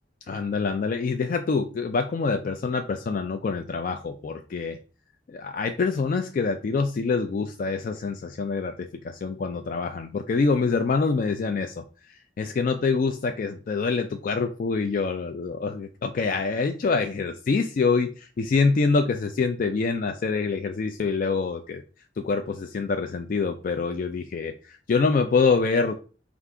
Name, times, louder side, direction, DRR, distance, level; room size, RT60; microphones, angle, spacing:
voice 1, 0.3-4.8 5.3-21.8 22.2-25.9, left 4 dB, 45° left, 6 dB, 0.3 m, -26 dB
4.7 x 2.4 x 3.6 m, 0.35 s
head